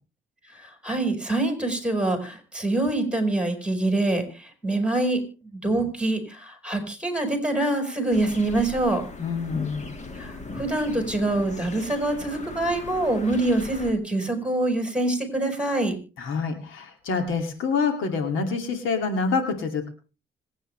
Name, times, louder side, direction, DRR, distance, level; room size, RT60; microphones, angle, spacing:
voice 1, 0.5-5.2 5.5-9.0 10.1-16.0, right 2 dB, 5° right, 6 dB, 4.9 m, -25 dB
sound 1, 8.1-13.9, left 3 dB, 35° left, 2.0 m, -39 dB
voice 2, 9.2-9.9 16.2-19.9, left 4 dB, 80° left, 5 dB, 2.6 m, -26 dB
26.0 x 9.0 x 3.3 m, 0.34 s
cardioid pair, 90°, 20 cm